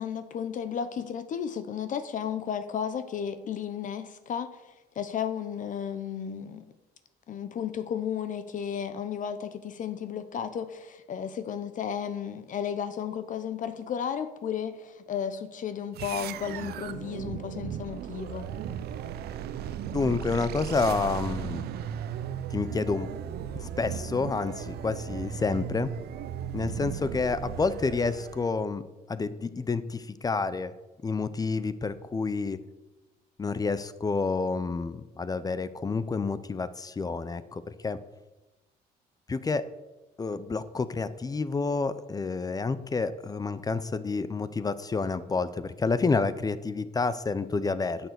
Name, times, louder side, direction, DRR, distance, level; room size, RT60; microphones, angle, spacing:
voice 1, 0.0-6.6 7.3-18.5, left 8 dB, 50° left, 11 dB, 0.9 m, -33 dB
sound 1, 15.9-28.6, right 9 dB, 70° right, 0.8 m, -36 dB
voice 2, 19.9-21.6 22.5-23.1 23.5-25.9 26.5-28.8 29.1-30.7 31.0-32.6 33.4-38.0 39.3-39.7 40.2-48.1, left 4 dB, 20° left, 14 dB, 0.7 m, -29 dB
10.0 x 7.0 x 8.1 m, 1.1 s
cardioid pair, 110°, 17 cm